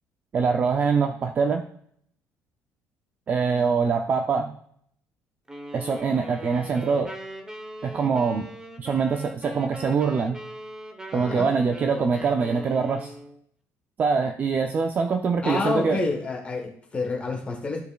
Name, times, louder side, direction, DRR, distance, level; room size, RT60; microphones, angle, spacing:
voice 1, 0.3-1.6 3.3-4.5 5.7-7.1 7.8-8.5 8.8-10.4 11.1-13.1 14.0-16.0, right 5 dB, 35° right, 5 dB, 0.5 m, -24 dB
sound 1, 5.5-13.4, right 1 dB, 10° right, 1.0 m, -40 dB
voice 2, 11.1-11.5 15.4-17.8, left 3 dB, 25° left, 1 dB, 1.3 m, -28 dB
14.5 x 5.0 x 2.4 m, 0.66 s
cardioid pair, 145°, 5 cm